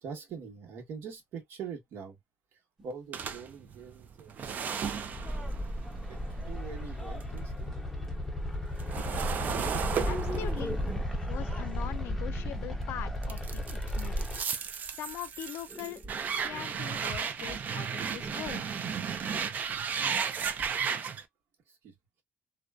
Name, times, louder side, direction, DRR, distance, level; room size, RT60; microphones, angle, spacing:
voice 1, 0.0-2.2 2.5-4.9 5.6-7.7 19.7-19.8 21.7-22.2, right 6 dB, 75° right, 1.1 m, -44 dB
sound 1, 2.8-2.9 3.4-3.6 4.3-4.4 5.3-5.9 7.3-7.4 7.7-8.1 9.6-20.8, equal, 15° right, 1.0 m, -45 dB
sound 2, 3.1-7.4 7.7-12.7 13.2-21.2, right 7 dB, 45° right, 0.4 m, -35 dB
sound 3, 5.1-14.4, left 1 dB, 5° left, 0.6 m, -34 dB
voice 2, 10.1-10.7 11.2-14.3 14.9-16.0 16.4-18.7, left 11 dB, 80° left, 0.3 m, -41 dB
2.5 x 2.2 x 2.2 m
cardioid pair, 145°, 4 cm